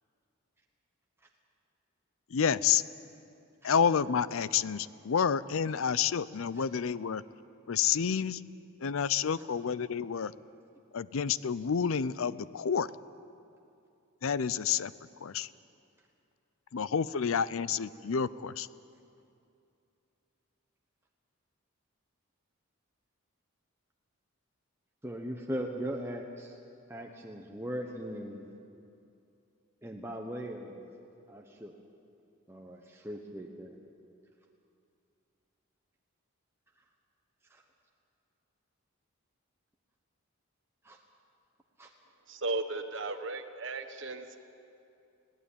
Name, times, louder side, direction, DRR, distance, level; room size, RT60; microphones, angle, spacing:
voice 1, 2.3-2.8 3.6-7.2 7.7-8.4 8.8-10.3 10.9-12.9 14.2-14.9 15.2-15.5 16.7-18.7, left 7 dB, 70° left, 18 dB, 0.5 m, -29 dB
voice 2, 25.0-26.6 26.9-28.5 29.8-30.9 31.3-31.7 32.5-33.8 37.5-37.6 40.8-41.0 41.8-41.9, equal, 10° right, 1 dB, 1.0 m, -39 dB
voice 3, 42.3-44.4, right 3 dB, 55° right, 7 dB, 1.2 m, -35 dB
21.0 x 17.0 x 8.6 m, 2.6 s
head